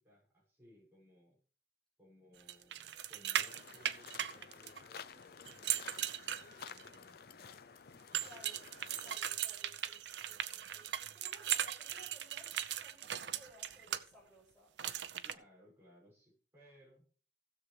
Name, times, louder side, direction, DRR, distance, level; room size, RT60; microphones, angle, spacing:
voice 1, 0.0-1.4 2.0-7.6 8.1-8.3 15.2-17.1, left 1 dB, 15° right, -5 dB, 6.2 m, -64 dB
sound 1, 2.5-5.0 5.5-6.9 8.1-14.0 14.8-15.3, right 10 dB, 80° right, 0.6 m, -38 dB
sound 2, 3.4-9.2, left 6 dB, 60° left, 0.5 m, -53 dB
voice 2, 8.2-8.6 9.0-14.7, left 1 dB, 5° left, -5 dB, 6.2 m, -61 dB
16.0 x 7.1 x 3.3 m, 0.41 s
head